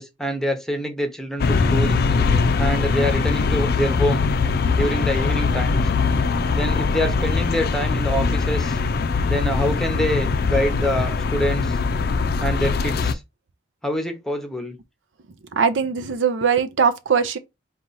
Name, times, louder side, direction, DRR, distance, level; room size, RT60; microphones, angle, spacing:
voice 1, 0.0-2.0 2.6-4.2 4.7-5.9 6.5-8.8 9.3-11.8 12.4-13.2 13.8-14.8, equal, 5° left, 0.8 m, -25 dB
sound 1, 1.4-13.1, left 4 dB, 55° left, 0.4 m, -21 dB
voice 2, 15.5-17.4, right 6 dB, 85° right, 0.6 m, -20 dB
4.3 x 2.4 x 4.0 m
head